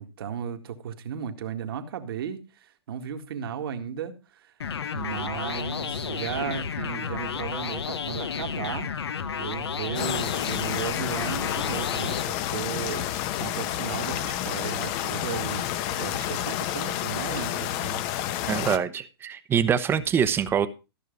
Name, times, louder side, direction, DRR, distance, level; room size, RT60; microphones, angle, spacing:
voice 1, 0.0-4.5 4.9-8.9 9.4-13.1 13.4-18.0, right 8 dB, 65° right, 1.9 m, -35 dB
sound 1, 4.6-12.2, left 7 dB, 85° left, 1.1 m, -32 dB
sound 2, 9.9-18.8, left 12 dB, 35° left, 0.9 m, -30 dB
voice 2, 18.5-20.7, right 8 dB, 15° right, 0.9 m, -24 dB
14.0 x 6.6 x 5.2 m
hypercardioid pair, 135°, 13 cm